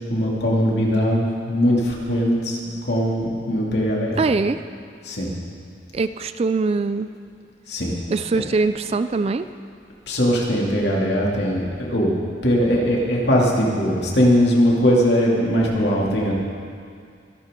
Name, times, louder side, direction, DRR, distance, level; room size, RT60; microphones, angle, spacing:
voice 1, 0.1-4.2 5.0-5.4 7.7-8.0 10.1-12.1 12.4-16.3, equal, 60° left, -3 dB, 2.6 m, -20 dB
voice 2, 4.2-4.6 5.9-7.1 8.1-9.5, right 3 dB, 35° right, 12 dB, 0.3 m, -22 dB
23.0 x 12.0 x 3.8 m, 2.3 s
head